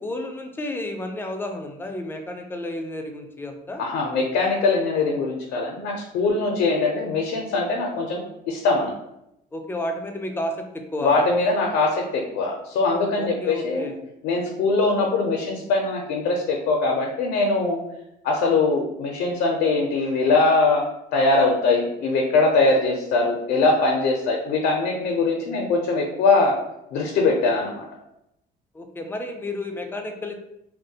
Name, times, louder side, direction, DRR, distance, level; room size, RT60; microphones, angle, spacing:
voice 1, 0.0-3.8 9.5-11.3 13.2-14.0 28.7-30.3, left 1 dB, 15° left, 4 dB, 0.3 m, -31 dB
voice 2, 3.8-8.2 8.5-8.9 11.0-13.9 14.2-17.8 18.2-20.8 21.1-26.6 26.9-27.8, left 3 dB, 80° left, 0 dB, 0.5 m, -22 dB
2.2 x 2.0 x 2.7 m, 0.82 s
cardioid pair, 110°, 17 cm